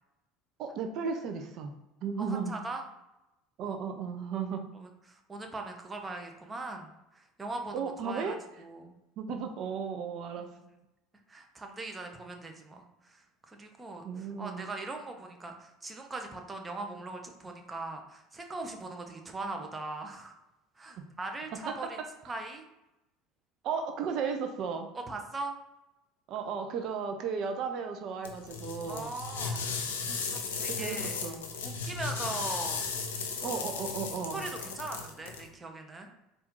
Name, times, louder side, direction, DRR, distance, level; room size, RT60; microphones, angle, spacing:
voice 1, 0.6-1.7 2.0-2.6 3.6-4.6 7.7-8.4 9.2-10.5 14.0-14.7 21.0-21.1 21.7-21.8 23.6-24.9 26.3-29.1 30.1-30.2 30.7-31.4 33.4-34.5, right 6 dB, 55° right, 5 dB, 0.5 m, -35 dB
voice 2, 2.2-2.8 3.6-3.7 4.7-8.9 10.5-10.6 11.3-20.4 20.8-22.0 22.3-22.6 25.1-25.5 28.9-29.6 30.3-31.2 31.6-32.8 33.4-33.6 34.3-36.1, right 2 dB, 20° right, 3 dB, 0.9 m, -40 dB
sound 1, 28.2-35.5, left 5 dB, 80° left, 0.6 m, -36 dB
4.2 x 2.6 x 3.7 m, 0.93 s
hypercardioid pair, 75°, 0 cm